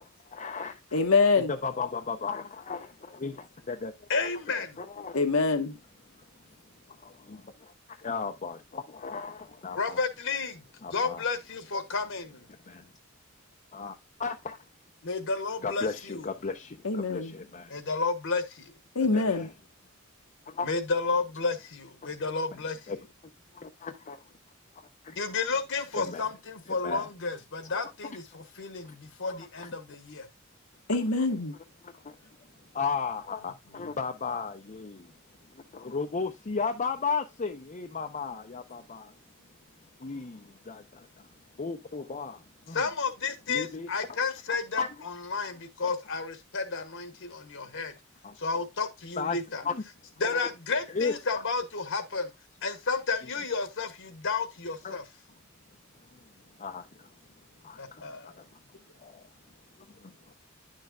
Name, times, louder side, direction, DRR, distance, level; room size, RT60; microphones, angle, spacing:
voice 1, 0.4-0.7 1.5-4.3 4.8-5.2 6.9-10.0 10.8-11.2 12.7-12.9 13.7-13.9 14.2-14.6 15.6-17.7 19.3-19.5 20.5-20.7 22.5-22.6 22.9-23.0 23.5-24.2 24.8-25.2 25.9-26.3 26.8-27.1 27.7-27.8 29.3-29.7 31.8-32.2 32.7-35.1 35.6-39.1 40.0-41.3 41.6-42.8 43.5-43.9 44.5-45.0 45.8-45.9 48.2-48.3 49.2-49.4 49.6-49.8 50.2-50.4 50.9-51.1 54.8-55.0 56.1-56.3 56.6-57.1 57.6-58.5 59.0-59.3 60.0-60.1, left 5 dB, 35° left, 0.7 m, -35 dB
voice 2, 0.9-1.5 5.1-5.7 16.8-17.3 18.9-19.5 30.9-31.5, left 3 dB, 85° left, 1.3 m, -24 dB
voice 3, 4.1-4.8 9.8-10.6 10.9-12.4 15.0-16.2 17.7-18.7 20.6-22.9 25.2-30.3 42.7-47.9 48.4-49.6 50.2-52.3 52.6-55.0 57.8-58.3, left 4 dB, 65° left, 1.3 m, -32 dB
10.5 x 6.5 x 2.3 m
head